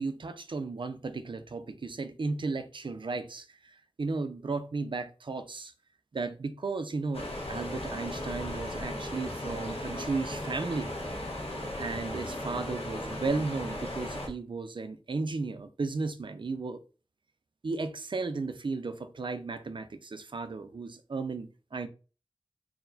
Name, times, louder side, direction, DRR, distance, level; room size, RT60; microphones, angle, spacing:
voice 1, 0.0-5.7 6.1-10.9 11.8-16.8 17.6-21.9, right 3 dB, 55° right, 0.5 m, -35 dB
sound 1, 7.1-14.3, left 1 dB, 80° left, 1.2 m, -36 dB
4.6 x 2.0 x 3.9 m
wide cardioid pair, 75°, 10 cm